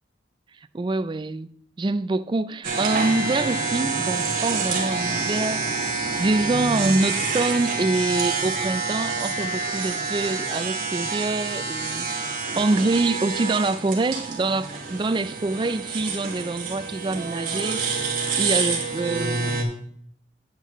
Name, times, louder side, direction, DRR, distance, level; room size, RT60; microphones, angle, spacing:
voice 1, 0.7-1.5 1.8-5.8 6.2-18.1 18.4-19.5, right 2 dB, 25° right, 0.3 m, -25 dB
sound 1, 2.6-19.6, right 4 dB, 50° right, 2.2 m, -27 dB
9.6 x 8.9 x 3.1 m
head